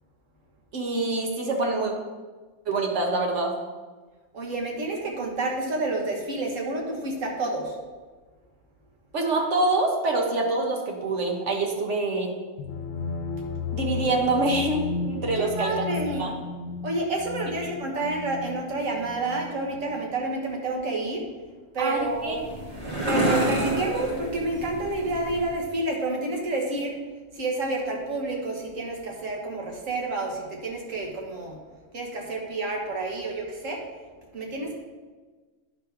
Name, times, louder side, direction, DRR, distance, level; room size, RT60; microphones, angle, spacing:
voice 1, 0.7-1.9 2.7-3.5 9.1-12.3 13.7-15.7 16.1-16.3 21.8-22.4, right 2 dB, 65° right, 1 dB, 1.6 m, -25 dB
voice 2, 4.3-7.8 15.4-16.2 16.8-21.3 21.7-22.4 23.0-26.9 27.3-31.6 31.9-33.8 34.3-34.8, right 2 dB, 90° right, -1 dB, 1.8 m, -29 dB
sound 1, 12.6-20.3, left 4 dB, 85° left, 1.0 m, -34 dB
sound 2, 22.0-25.6, right 1 dB, 50° right, 1.9 m, -29 dB
10.0 x 3.4 x 5.8 m, 1.3 s
omnidirectional pair, 1.3 m